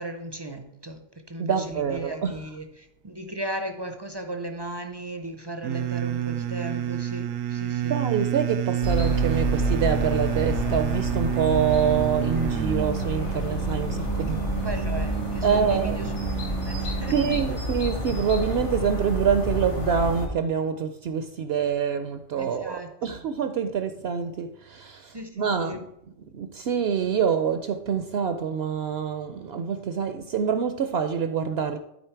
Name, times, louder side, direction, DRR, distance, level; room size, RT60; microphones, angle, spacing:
voice 1, 0.0-8.0 14.2-16.2 16.6-17.4 22.4-23.2 25.1-25.9, right 1 dB, 35° right, 0.4 m, -36 dB
voice 2, 1.4-2.4 7.9-14.6 15.4-16.0 17.1-25.8 26.3-31.8, right 7 dB, 65° right, 0.7 m, -26 dB
sound 1, 5.6-17.5, right 10 dB, 90° right, 1.0 m, -29 dB
sound 2, 8.8-20.3, equal, 65° left, 2.2 m, -29 dB
12.0 x 4.1 x 4.5 m
omnidirectional pair, 1.3 m